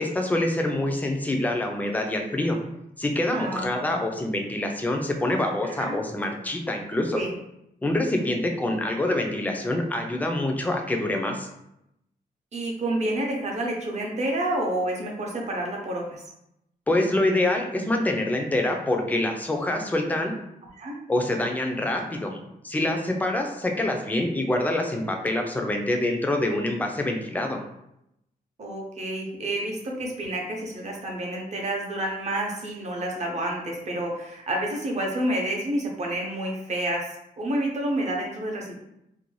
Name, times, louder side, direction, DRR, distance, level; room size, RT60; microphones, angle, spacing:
voice 1, 0.0-2.6 3.0-7.2 7.8-11.5 16.9-20.3 21.1-22.4 22.6-27.6, left 1 dB, 10° left, 2 dB, 0.3 m, -26 dB
voice 2, 3.3-4.0 5.6-6.0 7.1-7.3 12.5-16.2 20.8-20.9 28.6-37.0 37.4-38.8, right 1 dB, 45° right, -1 dB, 0.6 m, -29 dB
2.5 x 2.2 x 3.0 m, 0.82 s
wide cardioid pair, 150°, 16 cm